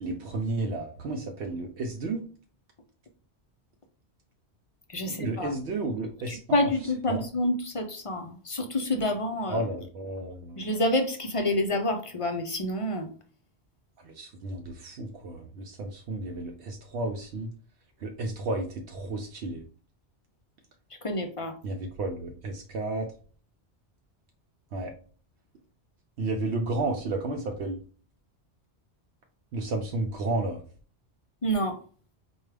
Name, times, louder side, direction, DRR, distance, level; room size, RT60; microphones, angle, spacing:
voice 1, 0.0-2.2 5.1-7.2 9.5-10.6 14.0-17.5 18.0-19.6 21.6-23.1 24.7-24.9 26.2-27.8 29.5-30.6, right 2 dB, 70° right, 2 dB, 0.8 m, -32 dB
voice 2, 4.9-5.5 6.3-9.6 10.6-13.1 21.0-21.5 31.4-31.7, left 1 dB, 50° left, 5 dB, 0.4 m, -28 dB
4.6 x 2.3 x 3.3 m, 0.42 s
omnidirectional pair, 1.2 m